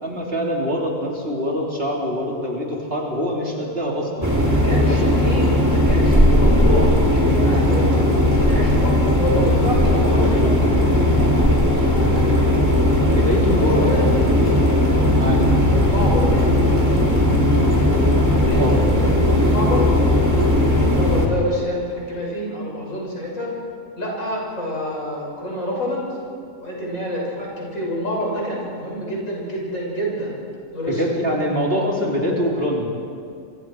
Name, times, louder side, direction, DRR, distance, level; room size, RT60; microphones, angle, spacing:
voice 1, 0.0-4.3 4.9-5.2 11.2-11.4 13.1-14.0 15.2-15.4 18.6-18.8 30.9-32.9, equal, 45° right, -2 dB, 3.7 m, -24 dB
sound 1, 4.2-21.3, left 1 dB, 10° right, 2.7 m, -17 dB
voice 2, 4.6-10.4 13.3-14.4 15.7-16.5 18.3-23.5 24.0-26.0 26.6-30.4 30.7-31.0, equal, 70° left, -3 dB, 7.1 m, -27 dB
sound 2, 6.8-19.1, right 1 dB, 75° right, 6.0 m, -34 dB
28.0 x 24.0 x 4.8 m, 2.4 s
omnidirectional pair, 1.4 m